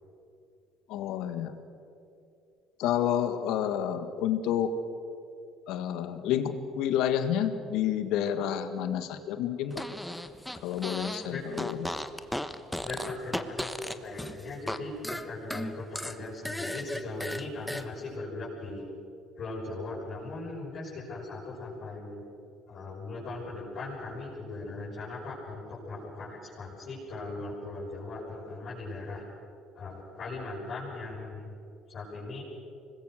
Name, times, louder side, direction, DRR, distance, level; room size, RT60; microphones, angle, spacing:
voice 1, 0.9-1.6 2.8-4.7 5.7-9.8 10.6-11.9, left 10 dB, 70° left, 10 dB, 1.7 m, -29 dB
Fart, 9.7-11.3 11.5-14.8 15.0-17.8, left 1 dB, 5° left, 1.3 m, -36 dB
voice 2, 12.8-18.9 19.4-22.2 22.7-29.2 29.7-31.5 31.9-32.4, left 2 dB, 50° left, -9 dB, 7.3 m, -39 dB
25.0 x 20.5 x 6.6 m, 2.7 s
hypercardioid pair, 65°, 0 cm